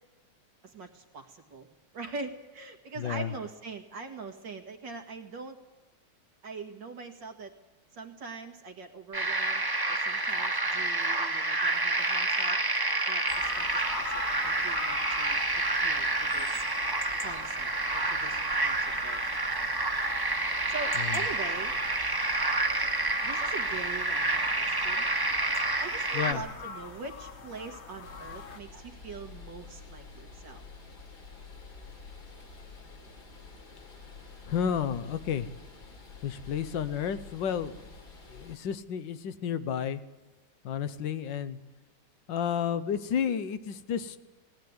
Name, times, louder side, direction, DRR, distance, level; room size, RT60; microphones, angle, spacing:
voice 1, 0.6-1.7 1.9-5.6 6.4-7.5 7.9-12.6 13.1-16.6 17.2-18.8 19.0-19.2 20.7-21.8 22.3-22.4 23.2-25.1 25.8-30.6, right 4 dB, 90° right, 6 dB, 2.5 m, -43 dB
voice 2, 3.0-3.3 21.0-21.2 26.1-26.4 34.5-35.5 36.2-37.8 38.3-40.0 40.6-41.6 42.3-44.2, left 8 dB, 90° left, 13 dB, 1.6 m, -31 dB
sound 1, 9.1-26.3, right 2 dB, 15° right, 0.9 m, -29 dB
sound 2, 13.3-28.6, left 4 dB, 40° left, 1.5 m, -43 dB
sound 3, 28.0-38.6, left 4 dB, 65° left, 3.2 m, -48 dB
19.0 x 17.0 x 9.5 m, 1.1 s
omnidirectional pair, 1.9 m